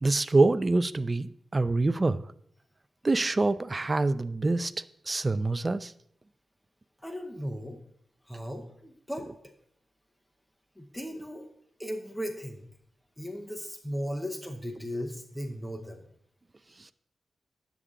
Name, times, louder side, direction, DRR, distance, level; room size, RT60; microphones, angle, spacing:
voice 1, 0.0-2.2 3.0-4.7 5.1-5.9, right 3 dB, 25° right, 0.3 m, -25 dB
voice 2, 7.0-7.8 8.2-9.5 10.8-11.5 11.8-12.7 13.2-16.1, equal, 5° left, 0.8 m, -37 dB
10.0 x 8.1 x 3.7 m
wide cardioid pair, 165°, 0 cm